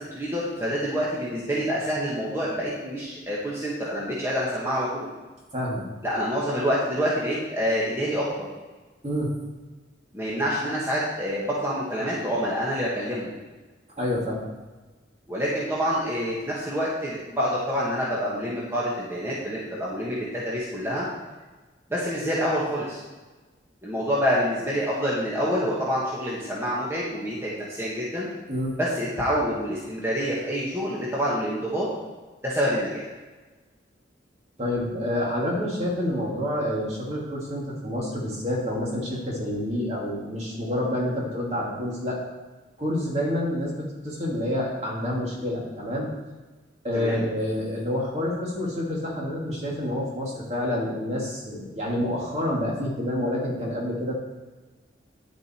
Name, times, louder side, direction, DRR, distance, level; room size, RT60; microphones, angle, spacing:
voice 1, 0.0-5.1 6.0-8.5 10.1-13.3 15.3-21.0 21.9-23.0 23.8-28.3 28.8-31.9 32.4-33.1 46.9-47.2, equal, 15° right, -6 dB, 1.5 m, -27 dB
voice 2, 5.5-5.9 9.0-9.3 14.0-14.4 28.5-28.7 34.6-42.2 42.8-46.1 46.8-54.1, left 1 dB, 35° right, -3 dB, 2.5 m, -28 dB
10.5 x 7.3 x 4.5 m, 1.3 s
head